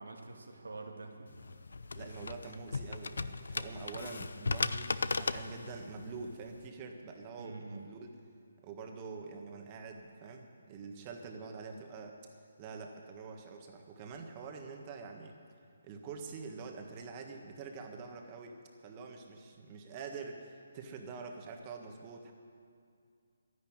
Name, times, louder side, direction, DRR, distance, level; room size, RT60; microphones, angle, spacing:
voice 1, 0.0-1.5 7.4-7.9, right 3 dB, 90° right, 2 dB, 2.3 m, -46 dB
sound 1, 1.3-6.7, left 3 dB, 80° left, 0.6 m, -37 dB
voice 2, 1.9-8.1 8.6-12.2 12.6-15.3 15.8-22.3, right 4 dB, 25° right, 3 dB, 1.6 m, -46 dB
12.0 x 11.0 x 8.9 m, 2.4 s
hypercardioid pair, 155°, 0 cm